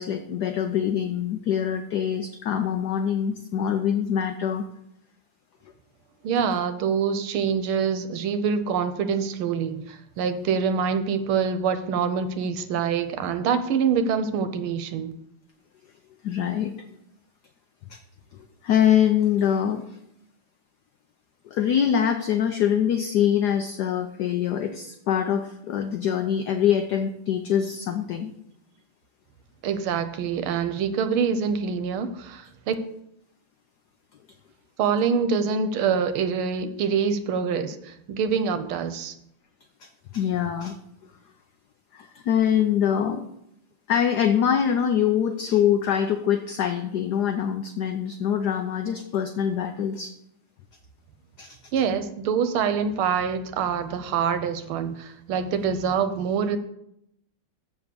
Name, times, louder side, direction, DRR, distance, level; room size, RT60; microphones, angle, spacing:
voice 1, 0.0-4.6 16.2-16.7 17.9-18.0 18.6-19.8 21.5-28.3 39.8-39.9 40.1-40.7 41.9-43.2 43.9-50.1 51.4-51.6, left 9 dB, 70° left, 7 dB, 1.0 m, -24 dB
voice 2, 6.2-15.1 29.6-32.7 34.8-39.1 51.7-56.6, right 6 dB, 85° right, 10 dB, 1.6 m, -25 dB
7.5 x 6.0 x 6.8 m, 0.77 s
omnidirectional pair, 2.3 m